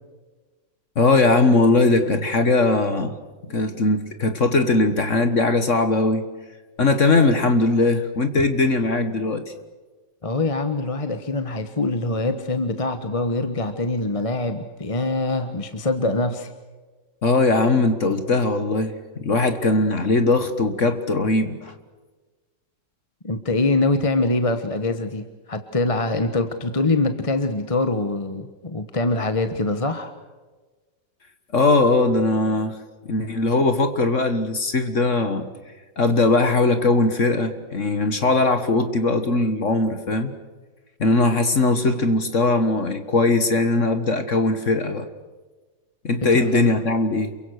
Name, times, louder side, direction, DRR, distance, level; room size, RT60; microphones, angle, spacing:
voice 1, 0.9-3.1 3.4-6.2 6.8-9.4 17.2-21.7 31.5-32.8 33.1-35.5 36.0-40.3 41.0-45.1 46.0-47.3, left 3 dB, 45° left, 9 dB, 1.7 m, -20 dB
voice 2, 10.2-16.5 23.2-30.1 46.3-46.8, left 2 dB, 20° left, 8 dB, 1.1 m, -24 dB
28.0 x 23.5 x 6.5 m, 1.3 s
omnidirectional pair, 2.0 m